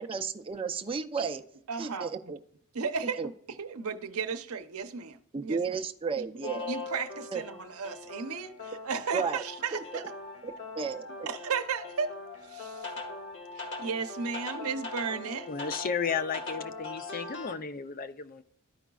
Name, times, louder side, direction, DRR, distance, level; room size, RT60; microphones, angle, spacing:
voice 1, 0.0-1.4 1.8-2.4 3.2-3.3 5.3-6.7 7.3-7.4 9.1-9.4 9.7-9.8 10.4-11.1, right 5 dB, 25° right, 0.5 m, -33 dB
voice 2, 1.7-2.1 2.7-5.8 6.2-10.0 11.3-12.1 12.4-12.9 13.5-15.5, right 5 dB, 75° right, 0.7 m, -35 dB
sound 1, 6.4-17.5, left 3 dB, 60° left, 1.6 m, -41 dB
voice 3, 15.5-18.4, left 6 dB, 40° left, 0.5 m, -33 dB
13.5 x 5.0 x 2.3 m
head